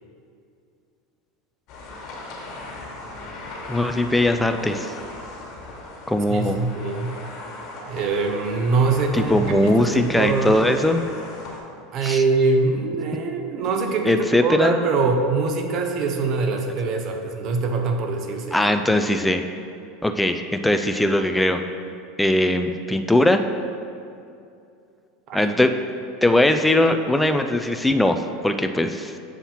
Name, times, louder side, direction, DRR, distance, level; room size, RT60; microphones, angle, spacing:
sound 1, 1.7-11.6, left 2 dB, 55° left, 1.5 m, -38 dB
voice 1, 3.7-4.9 6.1-6.6 9.1-11.0 12.0-12.2 14.0-14.7 18.5-19.4 20.0-21.6 22.2-23.4 25.3-25.7 26.2-29.1, left 1 dB, 5° left, 7 dB, 0.3 m, -20 dB
voice 2, 6.3-7.1 7.8-10.6 11.9-18.6 25.3-25.4, right 4 dB, 50° right, 4 dB, 0.7 m, -23 dB
7.2 x 2.8 x 5.6 m, 2.5 s
supercardioid pair, 105°, 0 cm